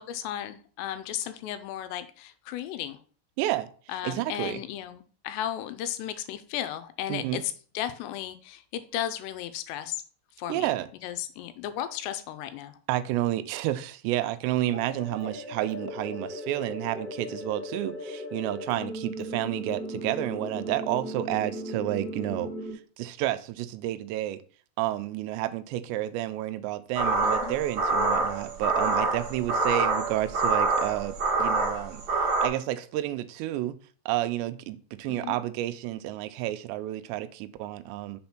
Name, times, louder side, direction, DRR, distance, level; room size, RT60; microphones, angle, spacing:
voice 1, 0.0-3.0 3.9-10.0 10.4-10.7 11.0-12.7 27.2-27.5 35.1-35.4, left 11 dB, 85° left, 10 dB, 2.7 m, -35 dB
voice 2, 3.4-4.6 7.1-7.4 10.5-10.9 12.9-22.5 23.0-24.4 24.8-32.0 32.4-33.8 34.1-38.2, right 14 dB, 90° right, 12 dB, 2.8 m, -30 dB
sound 1, 14.7-22.7, equal, 55° left, 2.2 m, -37 dB
sound 2, 26.9-32.5, right 3 dB, 55° right, 1.1 m, -26 dB
6.2 x 4.3 x 5.8 m, 0.42 s
omnidirectional pair, 4.9 m